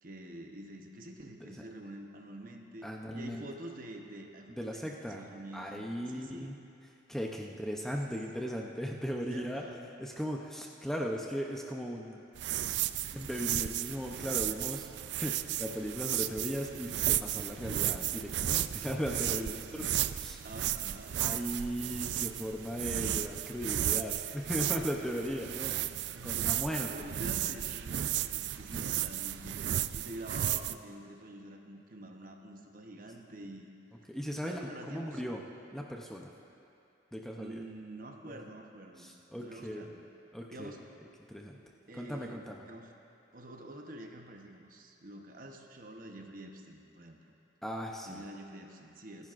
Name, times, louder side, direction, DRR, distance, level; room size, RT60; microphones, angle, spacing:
voice 1, 0.0-4.9 5.2-6.6 7.9-8.0 9.3-9.9 13.0-13.2 19.5-20.0 20.4-21.3 25.6-26.6 26.9-29.6 29.9-33.7 34.3-35.2 37.4-40.0 40.5-40.8 41.9-42.9 43.3-47.3 48.1-49.3, right 1 dB, 45° right, 3 dB, 0.9 m, -47 dB
voice 2, 2.8-3.4 4.6-5.2 5.5-6.6 7.1-9.6 10.0-12.2 13.1-20.4 21.2-25.8 26.2-27.1 28.7-28.9 34.1-35.4 35.7-36.3 37.1-37.6 38.3-38.4 39.0-39.9 40.3-40.7 41.3-41.6 41.9-42.7 47.6-48.2, equal, ahead, 0 dB, 0.6 m, -37 dB
sound 1, 12.4-30.7, right 12 dB, 65° right, 0.3 m, -34 dB
28.0 x 10.5 x 2.5 m, 2.6 s
head